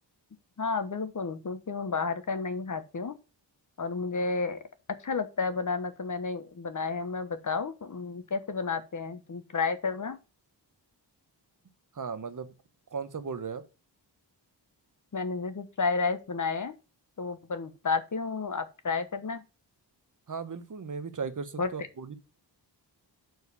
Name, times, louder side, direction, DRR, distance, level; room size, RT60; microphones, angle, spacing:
voice 1, 0.6-3.1 3.8-4.6 5.0-10.2 15.1-16.7 17.2-19.4 21.6-21.7, left 4 dB, 45° left, 1.1 m, -31 dB
voice 2, 11.9-12.5 12.9-13.6 20.3-22.2, right 5 dB, 45° right, 1.1 m, -36 dB
6.5 x 4.8 x 6.8 m
wide cardioid pair, 105°, 43 cm